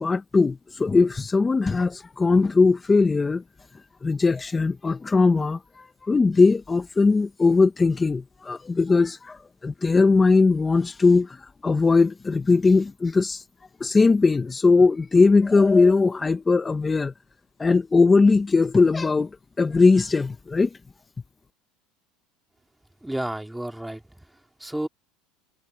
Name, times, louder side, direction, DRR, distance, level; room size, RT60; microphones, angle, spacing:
voice 1, 0.0-3.4 4.0-13.4 13.8-17.1 17.6-19.3 19.6-20.7, left 4 dB, 15° left, 0.8 m, -20 dB
voice 2, 23.0-24.9, right 1 dB, 5° right, 2.8 m, -32 dB
supercardioid pair, 130°, 0 cm